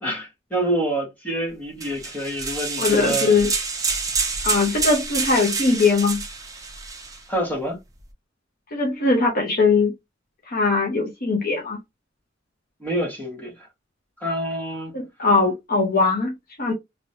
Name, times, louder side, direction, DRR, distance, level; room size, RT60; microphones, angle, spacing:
voice 1, 0.0-3.3 7.3-7.8 12.8-13.7 14.2-14.9, right 1 dB, 10° left, 1.4 m, -27 dB
sound 1, 1.8-7.2, right 4 dB, 20° right, 0.8 m, -27 dB
voice 2, 2.8-3.5 4.4-6.2 8.7-9.9 10.5-11.8 14.9-16.7, left 4 dB, 50° left, 0.9 m, -20 dB
3.1 x 2.9 x 2.7 m
head